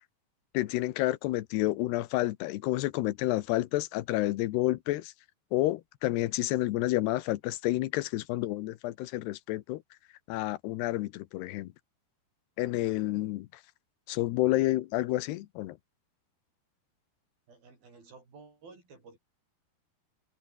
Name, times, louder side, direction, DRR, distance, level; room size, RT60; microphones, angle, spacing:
voice 1, 0.5-5.1 5.5-9.8 10.3-11.7 12.6-13.5 14.1-15.8, left 17 dB, 85° left, 3.0 m, -29 dB
voice 2, 17.5-19.2, right 4 dB, 65° right, 9.5 m, -53 dB
omnidirectional pair, 4.7 m